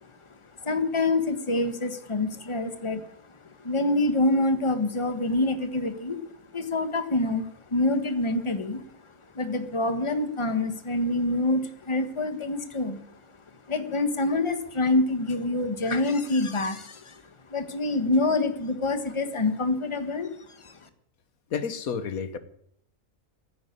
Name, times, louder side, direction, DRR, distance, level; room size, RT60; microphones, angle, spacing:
voice 1, 0.6-6.2 6.5-8.8 9.3-13.2 13.7-17.2 17.5-20.9, left 2 dB, 20° left, 8 dB, 1.4 m, -26 dB
voice 2, 21.5-22.4, left 6 dB, 85° left, 12 dB, 1.6 m, -30 dB
15.5 x 9.3 x 9.5 m, 0.69 s
omnidirectional pair, 1.5 m